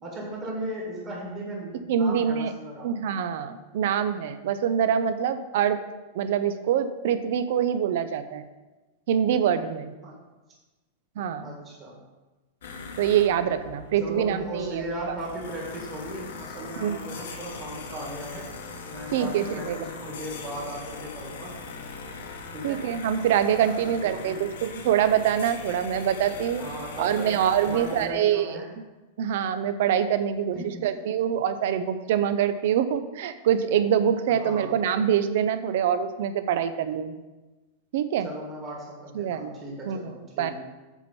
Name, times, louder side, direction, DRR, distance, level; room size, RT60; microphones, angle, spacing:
voice 1, 0.0-2.9 10.0-10.2 11.4-12.0 14.0-18.5 18.8-21.5 22.5-22.8 23.8-24.4 26.6-27.4 27.6-28.7 30.5-30.9 34.3-34.8 38.2-40.5, right 1 dB, 20° right, -3 dB, 1.8 m, -37 dB
voice 2, 1.9-2.5 2.8-5.8 6.1-8.4 9.1-9.9 11.2-11.5 13.0-14.8 16.8-17.0 19.1-19.8 22.6-26.6 27.0-28.6 29.2-30.6 30.8-37.1 37.9-38.3 39.1-39.5 39.9-40.1 40.4-40.5, right 9 dB, 50° right, 11 dB, 0.6 m, -25 dB
sound 1, 12.6-28.1, left 4 dB, 80° left, 1.3 m, -40 dB
8.0 x 4.5 x 7.0 m, 1.2 s
supercardioid pair, 180°, 0 cm